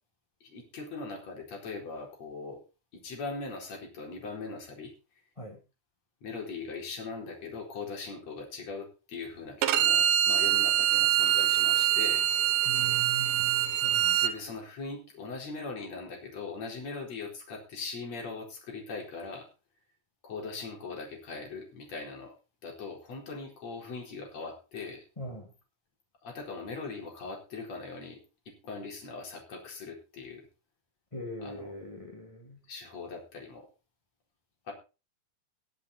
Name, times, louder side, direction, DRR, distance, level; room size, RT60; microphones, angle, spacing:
voice 1, 0.4-2.6 2.9-4.9 6.2-12.3 14.1-19.5 20.2-22.3 22.6-25.0 26.2-28.2 28.5-30.4 31.4-31.7 32.7-33.7 34.7-34.8, left 4 dB, 45° left, 0 dB, 5.4 m, -40 dB
Bowed string instrument, 9.6-14.3, right 12 dB, 70° right, 2.4 m, -24 dB
voice 2, 12.6-14.3 25.2-25.5 31.1-32.6, right 2 dB, 15° left, 1 dB, 1.0 m, -41 dB
22.0 x 7.5 x 4.1 m, 0.31 s
omnidirectional pair, 4.4 m